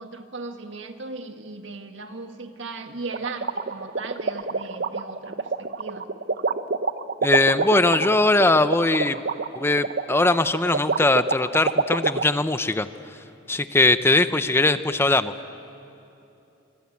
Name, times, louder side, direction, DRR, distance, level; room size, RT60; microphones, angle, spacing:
voice 1, 0.0-6.1, right 3 dB, 75° right, 6 dB, 1.7 m, -37 dB
sound 1, 3.1-12.2, right 4 dB, 55° right, 0.8 m, -26 dB
voice 2, 7.2-9.2 9.6-12.9 13.5-15.3, left 2 dB, 15° left, 11 dB, 0.6 m, -20 dB
25.0 x 24.0 x 8.5 m, 2.8 s
head